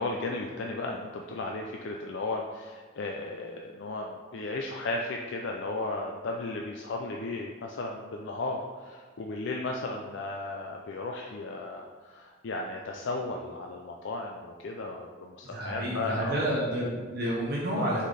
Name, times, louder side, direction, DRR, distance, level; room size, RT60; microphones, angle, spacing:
voice 1, 0.0-16.5 17.7-18.0, left 2 dB, 60° left, 1 dB, 0.4 m, -35 dB
voice 2, 15.5-18.0, equal, 50° right, -5 dB, 0.9 m, -30 dB
6.1 x 3.8 x 4.0 m, 1.5 s
head